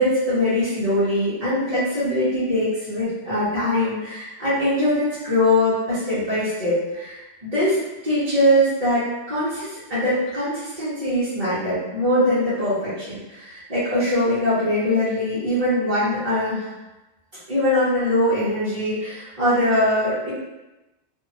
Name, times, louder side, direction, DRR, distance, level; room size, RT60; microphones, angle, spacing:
voice 1, 0.0-7.8 8.0-16.7 17.5-20.3, left 1 dB, 35° right, -13 dB, 0.9 m, -22 dB
2.7 x 2.7 x 2.7 m, 1.0 s
omnidirectional pair, 1.2 m